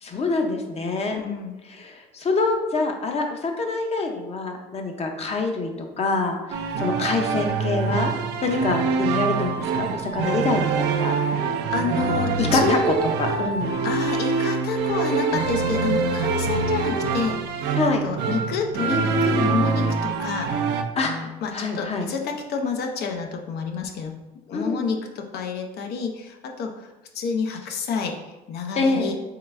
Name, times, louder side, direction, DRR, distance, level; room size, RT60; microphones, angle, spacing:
voice 1, 0.0-1.2 1.7-8.1 8.4-11.1 12.1-13.8 17.7-18.1 21.0-22.1 24.5-24.9 28.7-29.2, left 3 dB, 40° left, 4 dB, 0.7 m, -26 dB
voice 2, 1.1-1.5 11.7-12.8 13.8-17.4 18.0-20.5 21.0-24.2 24.5-26.9 27.1-28.2 28.5-29.2, left 5 dB, 75° left, 3 dB, 0.7 m, -28 dB
sound 1, 6.5-20.8, right 5 dB, 85° right, 0.5 m, -24 dB
3.8 x 3.5 x 3.2 m, 1.1 s
cardioid pair, 110°, 17 cm